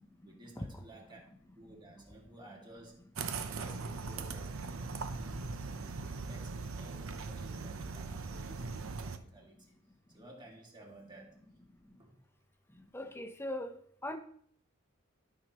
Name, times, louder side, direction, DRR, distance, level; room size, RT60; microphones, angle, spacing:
voice 1, 0.2-1.2 1.5-3.0 3.3-9.8 10.1-11.4 12.0-12.2, right 1 dB, 20° right, 2.1 m, -55 dB
sound 1, 3.2-9.2, right 4 dB, 85° right, 0.7 m, -40 dB
voice 2, 12.9-13.8 14.0-14.2, left 1 dB, 10° left, 0.7 m, -39 dB
12.5 x 5.9 x 3.0 m
head